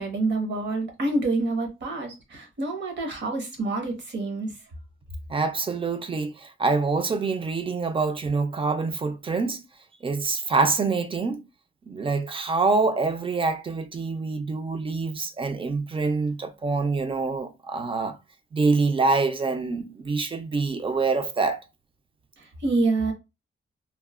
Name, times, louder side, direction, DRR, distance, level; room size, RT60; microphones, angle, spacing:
voice 1, 0.0-4.6 22.4-23.1, right 2 dB, 55° right, 0.9 m, -27 dB
voice 2, 5.3-9.6 10.0-11.4 11.8-18.2 18.5-21.6, right 4 dB, 25° right, 0.3 m, -25 dB
3.0 x 2.0 x 2.3 m
wide cardioid pair, 130°, 21 cm